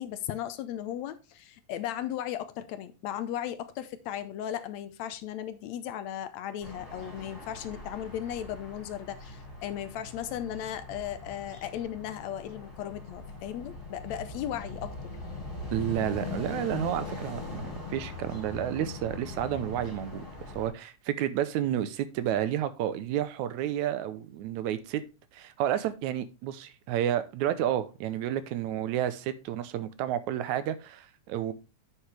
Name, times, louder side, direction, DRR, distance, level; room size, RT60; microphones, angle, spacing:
voice 1, 0.0-15.1, left 11 dB, 75° left, 1.9 m, -36 dB
sound 1, 6.6-20.7, left 3 dB, 15° left, 4.2 m, -41 dB
voice 2, 15.7-25.0 25.3-31.5, right 11 dB, 80° right, 2.1 m, -31 dB
9.6 x 6.4 x 3.3 m
omnidirectional pair, 3.4 m